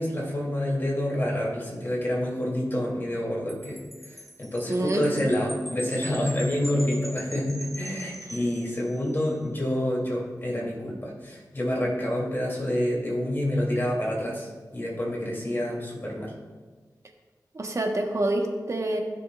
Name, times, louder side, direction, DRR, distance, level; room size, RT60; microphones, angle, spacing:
voice 1, 0.0-3.8 4.1-16.3, left 1 dB, 35° left, -4 dB, 3.1 m, -28 dB
Wind chime, 3.5-9.2, right 1 dB, ahead, 1.7 m, -42 dB
voice 2, 4.7-5.0 17.5-19.0, right 1 dB, 45° right, 2 dB, 1.3 m, -26 dB
15.5 x 6.7 x 2.5 m, 1.4 s
cardioid pair, 60°, 7 cm